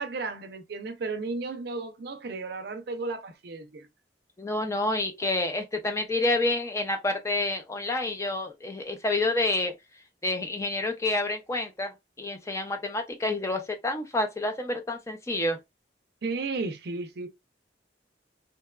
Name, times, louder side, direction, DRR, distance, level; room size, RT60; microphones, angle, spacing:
voice 1, 0.0-3.9 16.2-17.3, right 3 dB, 60° right, 0.5 m, -34 dB
voice 2, 4.4-9.7 10.2-11.9 12.2-15.6, left 2 dB, 15° left, 0.4 m, -28 dB
2.8 x 2.2 x 2.2 m
head